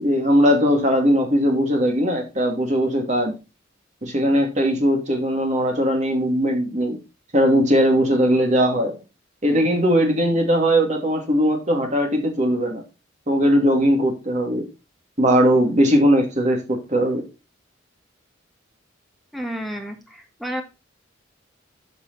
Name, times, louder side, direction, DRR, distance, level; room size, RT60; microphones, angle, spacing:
voice 1, 0.0-3.3 4.0-7.0 7.3-8.9 9.4-12.8 13.3-14.6 15.2-17.2, equal, 35° right, 2 dB, 2.5 m, -19 dB
voice 2, 19.3-20.6, equal, ahead, 3 dB, 1.6 m, -31 dB
9.6 x 5.5 x 4.0 m, 0.27 s
head